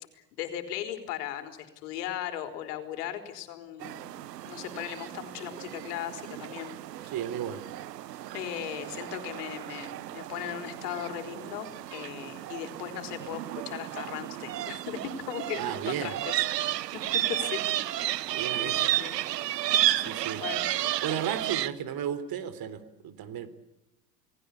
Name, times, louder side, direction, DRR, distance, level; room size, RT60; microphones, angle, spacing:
voice 1, 0.1-6.8 8.3-16.4 16.9-17.6 18.6-19.1 20.4-20.6, left 11 dB, 70° left, 7 dB, 4.1 m, -37 dB
sound 1, 3.8-21.7, right 14 dB, 85° right, 1.1 m, -32 dB
voice 2, 7.1-7.7 15.6-16.2 18.3-19.0 20.1-20.4 21.0-23.5, right 9 dB, 45° right, 13 dB, 3.7 m, -34 dB
29.5 x 19.5 x 8.4 m, 0.92 s
hypercardioid pair, 80°, 48 cm